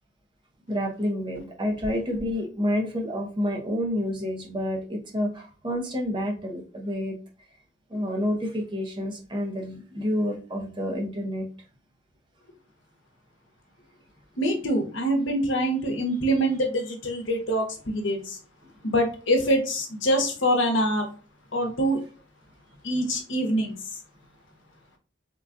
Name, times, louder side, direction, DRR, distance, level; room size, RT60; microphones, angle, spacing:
voice 1, 0.7-7.2 7.9-11.5 21.5-21.6, equal, 25° right, 1 dB, 0.6 m, -29 dB
voice 2, 14.4-18.4 18.8-21.1 21.5-22.0 22.8-23.7, equal, 80° left, 2 dB, 0.9 m, -25 dB
3.7 x 2.3 x 2.5 m, 0.37 s
head